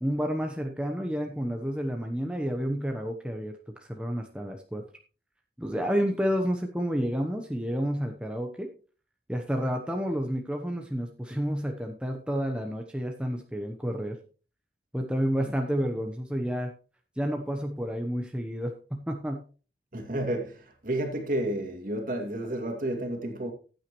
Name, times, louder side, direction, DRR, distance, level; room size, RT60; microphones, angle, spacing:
voice 1, 0.0-4.8 5.6-8.7 9.3-14.2 14.9-16.7 17.2-19.4, equal, 5° right, 0.9 m, -30 dB
voice 2, 19.9-23.5, right 1 dB, 45° right, 2.4 m, -31 dB
15.0 x 9.0 x 3.1 m
head